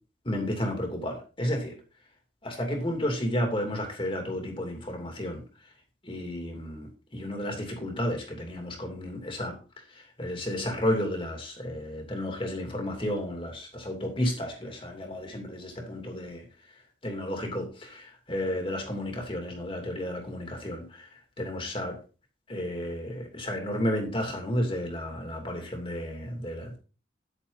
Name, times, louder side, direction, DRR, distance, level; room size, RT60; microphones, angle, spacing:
voice 1, 0.2-1.7 2.4-5.4 6.0-6.9 7.1-9.5 10.2-16.4 17.0-21.1 21.4-22.0 22.5-26.8, left 1 dB, 30° left, 2 dB, 2.8 m, -32 dB
10.0 x 8.6 x 4.0 m, 0.35 s
head